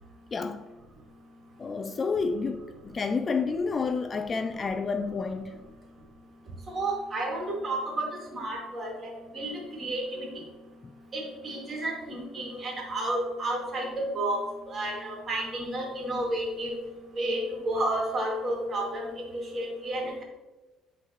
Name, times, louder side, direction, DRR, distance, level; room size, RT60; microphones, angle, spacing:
voice 1, 0.3-0.7 1.6-5.5 10.8-10.9, left 4 dB, 30° left, 0.3 m, -30 dB
voice 2, 6.7-8.1 8.3-9.1 9.3-10.3 11.1-13.9 14.1-14.4 14.7-16.8 17.1-20.1, right 1 dB, 35° right, 2.3 m, -31 dB
10.0 x 3.9 x 3.0 m
cardioid pair, 120°, 0 cm